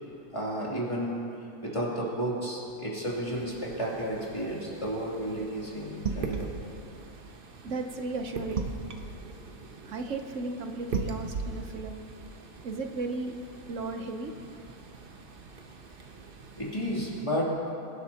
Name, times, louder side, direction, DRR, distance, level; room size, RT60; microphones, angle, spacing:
voice 1, 0.3-1.3 1.6-6.5 16.6-17.5, equal, 20° left, -6 dB, 2.9 m, -32 dB
sound 1, 3.1-17.3, right 4 dB, 45° right, 1.0 m, -40 dB
voice 2, 7.6-8.7 9.8-12.0 12.6-13.4 13.7-14.3, right 3 dB, 65° right, 5 dB, 1.2 m, -35 dB
26.0 x 12.0 x 2.9 m, 2.8 s
omnidirectional pair, 1.5 m